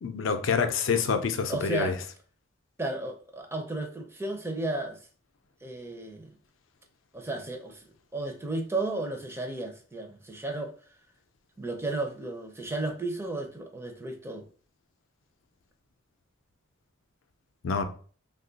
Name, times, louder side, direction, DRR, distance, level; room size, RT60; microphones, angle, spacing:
voice 1, 0.0-1.9 17.6-17.8, left 5 dB, 70° left, 0.4 m, -27 dB
voice 2, 1.5-2.0 2.8-5.0 5.6-6.3 7.1-7.8 8.1-10.7 11.6-14.5, right 2 dB, 10° right, 0.4 m, -33 dB
2.8 x 2.3 x 3.8 m
head